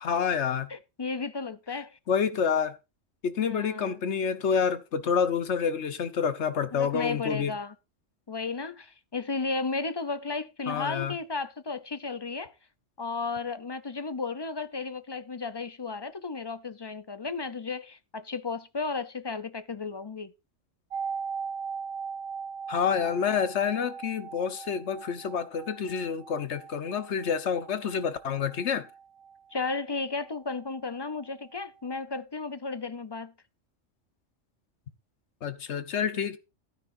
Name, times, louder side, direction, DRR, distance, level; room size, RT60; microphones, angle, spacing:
voice 1, 0.0-0.7 2.1-2.8 3.2-7.5 10.7-11.1 22.7-28.9 35.4-36.4, left 7 dB, 65° left, 1.2 m, -28 dB
voice 2, 0.7-2.0 3.4-4.0 6.7-7.7 8.3-12.5 13.0-20.3 29.5-33.3, left 4 dB, 35° left, 0.4 m, -34 dB
sound 1, 20.9-30.6 30.9-31.0, right 6 dB, 55° right, 0.8 m, -39 dB
15.0 x 9.7 x 2.6 m
omnidirectional pair, 1.3 m